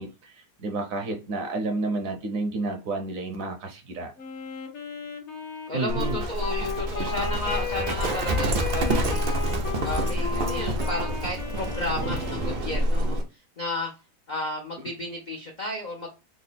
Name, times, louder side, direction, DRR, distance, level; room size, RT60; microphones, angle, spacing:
voice 1, 0.0-4.1 5.7-6.2, right 3 dB, 65° right, 5 dB, 0.9 m, -31 dB
Wind instrument woodwind instrument, 4.2-13.0, left 5 dB, 55° left, 0.9 m, -36 dB
voice 2, 5.7-13.9 14.3-16.1, left 1 dB, 75° left, 0 dB, 0.4 m, -33 dB
Livestock farm animals working animals, 5.9-13.2, right 1 dB, 80° right, 0.4 m, -27 dB
3.7 x 2.0 x 3.9 m, 0.30 s
omnidirectional pair, 1.9 m